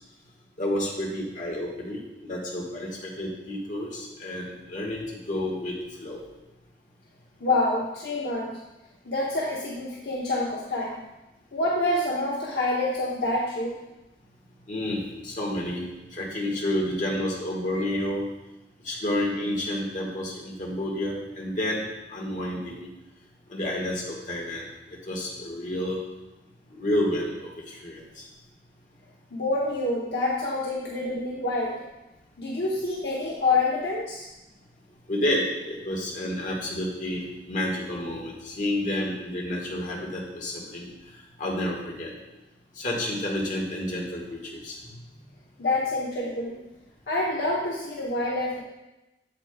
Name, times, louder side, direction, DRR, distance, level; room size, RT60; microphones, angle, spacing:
voice 1, 0.6-5.7 6.0-6.2 14.7-15.8 16.1-18.3 18.8-21.8 22.1-22.9 23.5-24.6 25.1-26.0 26.7-28.2 35.1-40.9 41.4-42.1 42.8-44.9, left 1 dB, 45° left, -3 dB, 1.6 m, -30 dB
voice 2, 7.4-8.6 9.0-11.0 11.5-13.8 29.3-31.8 32.4-34.2 45.6-46.6 47.1-48.6, left 2 dB, 65° left, -4 dB, 0.9 m, -27 dB
8.1 x 7.5 x 2.3 m, 1.0 s
head